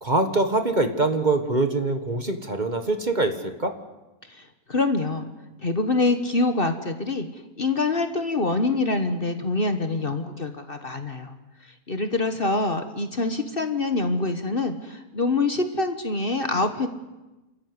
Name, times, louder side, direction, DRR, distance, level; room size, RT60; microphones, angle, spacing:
voice 1, 0.0-3.3 3.6-3.7, right 2 dB, 30° right, 8 dB, 1.7 m, -23 dB
voice 2, 4.3-5.3 5.6-11.3 11.6-16.9, left 3 dB, 40° left, 8 dB, 1.5 m, -25 dB
30.0 x 14.0 x 9.8 m, 1.1 s
omnidirectional pair, 1.6 m